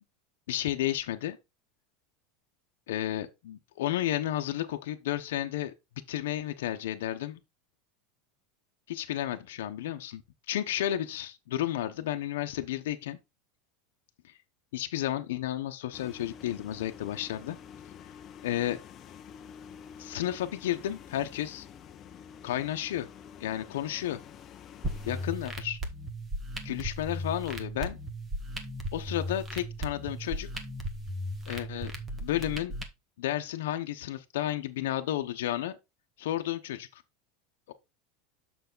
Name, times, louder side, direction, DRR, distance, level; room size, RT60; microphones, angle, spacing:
voice 1, 0.5-1.4 2.9-5.7 6.1-7.4 8.9-10.2 10.5-13.2 14.3-14.4 14.7-17.6 18.4-18.8 20.0-21.7 22.4-23.1 23.4-24.2 25.1-25.8 26.6-28.0 28.9-30.5 31.5-31.9 32.2-32.7 33.2-35.8 36.2-37.0 37.7-37.8, left 12 dB, 85° left, 0.9 m, -32 dB
sound 1, 15.9-25.3, left 8 dB, 30° left, 0.9 m, -48 dB
sound 2, 24.8-32.8, equal, 15° right, 1.6 m, -36 dB
7.0 x 6.2 x 3.9 m
supercardioid pair, 140°, 0 cm